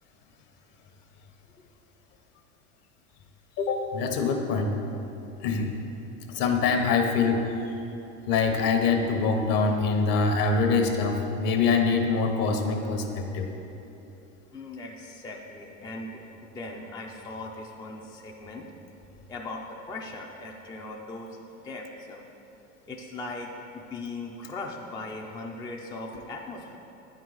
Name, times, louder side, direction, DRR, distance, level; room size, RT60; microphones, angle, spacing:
voice 1, 3.6-4.7 5.4-5.7 6.3-7.5 8.3-13.5, left 4 dB, 50° left, 4 dB, 1.0 m, -24 dB
voice 2, 14.5-18.7 19.3-22.2 22.9-26.8, left 2 dB, 10° left, 0 dB, 0.4 m, -39 dB
9.4 x 4.7 x 3.9 m, 2.9 s
hypercardioid pair, 95°, 43 cm